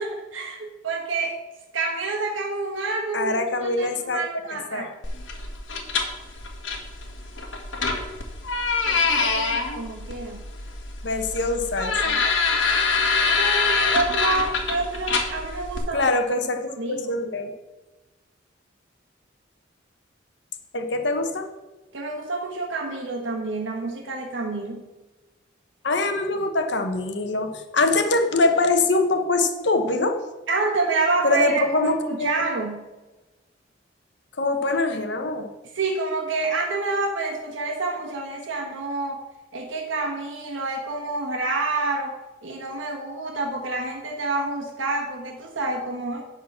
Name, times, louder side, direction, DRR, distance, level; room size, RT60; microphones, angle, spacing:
voice 1, 0.0-1.3 1.7-4.9 8.8-10.4 13.3-16.1 16.8-17.1 21.9-24.8 30.5-32.9 35.7-39.2 39.5-42.2 42.4-46.2, right 3 dB, 90° right, -1 dB, 1.3 m, -28 dB
voice 2, 3.1-4.2 4.7-4.9 11.0-12.2 15.9-17.5 20.7-21.5 25.8-30.2 31.2-32.3 34.4-35.5, left 2 dB, 65° left, 6 dB, 1.0 m, -23 dB
sound 1, 5.0-15.8, left 4 dB, 80° left, 1.5 m, -25 dB
10.5 x 4.0 x 7.4 m, 1.1 s
head